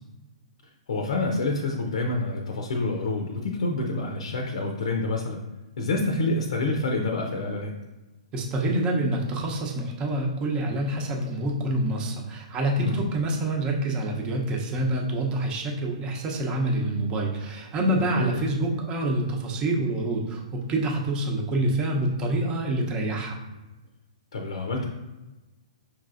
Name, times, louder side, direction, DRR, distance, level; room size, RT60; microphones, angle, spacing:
voice 1, 0.9-5.4 5.8-7.7 12.8-13.1 17.9-18.4 24.3-24.9, left 2 dB, 70° left, 2 dB, 0.6 m, -27 dB
voice 2, 8.3-23.4, right 1 dB, 25° right, 0 dB, 0.8 m, -27 dB
5.5 x 3.2 x 2.5 m, 1.1 s
hypercardioid pair, 125°, 3 cm